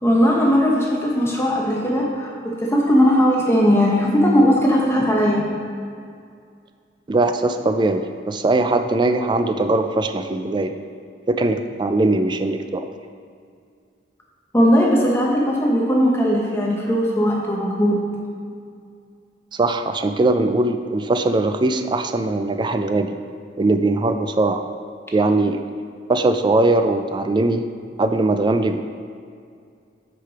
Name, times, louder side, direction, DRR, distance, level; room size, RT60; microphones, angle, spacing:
voice 1, 0.0-5.4 14.5-18.0, equal, 15° left, -3 dB, 0.8 m, -18 dB
voice 2, 7.1-10.7 11.3-12.9 19.5-23.2 23.6-24.6 25.1-25.6 26.1-27.6 28.0-28.8, right 2 dB, 25° right, 8 dB, 0.3 m, -20 dB
6.5 x 4.9 x 4.8 m, 2.3 s
head